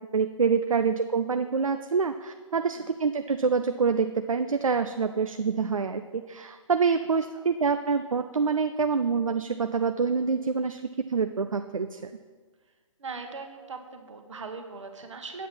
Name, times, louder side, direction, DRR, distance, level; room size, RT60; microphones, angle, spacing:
voice 1, 0.1-12.1, right 5 dB, 80° right, 8 dB, 0.5 m, -26 dB
voice 2, 13.0-15.5, right 4 dB, 65° right, 5 dB, 1.4 m, -40 dB
8.3 x 8.1 x 6.0 m, 1.5 s
figure-of-eight pair, 130°, 17 cm